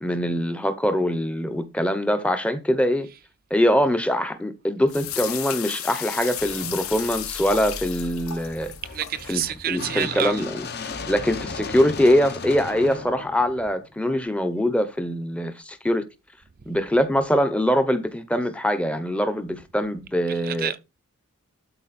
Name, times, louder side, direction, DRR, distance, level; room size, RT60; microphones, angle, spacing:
voice 1, 0.0-3.1 3.5-8.7 9.3-10.7 11.1-16.0 16.7-20.7, equal, 5° left, 0.8 m, -23 dB
sound 1, 4.9-9.4, left 10 dB, 70° left, 1.4 m, -34 dB
sound 2, 6.4-14.4, left 3 dB, 45° left, 1.1 m, -37 dB
voice 2, 8.9-10.4 20.3-20.8, right 10 dB, 40° right, 0.5 m, -28 dB
12.0 x 4.6 x 4.2 m
head